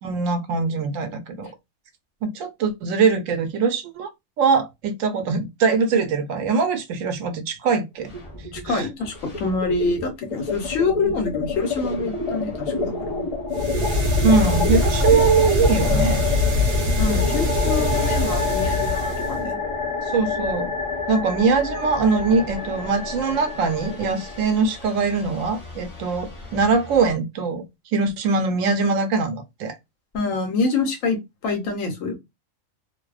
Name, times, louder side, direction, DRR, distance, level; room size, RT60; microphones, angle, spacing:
voice 1, 0.0-1.5 2.2-4.1 4.4-8.1 8.6-8.9 11.0-11.1 14.2-16.2 20.0-20.7 21.1-27.6 27.9-29.7, right 4 dB, 85° right, 1.0 m, -22 dB
sound 1, 8.0-8.8 9.1-27.1, left 3 dB, 30° left, 0.7 m, -28 dB
voice 2, 8.5-13.2 17.0-19.6 30.1-32.2, left 4 dB, 85° left, 1.1 m, -26 dB
sound 2, 13.5-19.4, left 2 dB, 45° right, 0.9 m, -23 dB
2.6 x 2.0 x 2.3 m
omnidirectional pair, 1.3 m